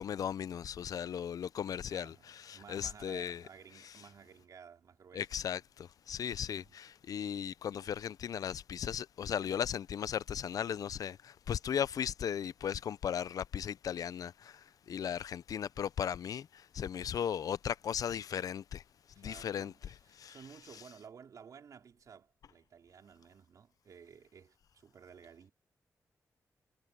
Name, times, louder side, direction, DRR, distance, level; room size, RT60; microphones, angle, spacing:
voice 1, 0.0-3.4 5.1-18.8 19.2-19.7 20.2-20.3, left 8 dB, 75° left, 0.4 m, -37 dB
voice 2, 1.9-5.6 6.5-6.8 19.1-25.5, right 7 dB, 70° right, 3.8 m, -55 dB
wide cardioid pair, 180°, 6 cm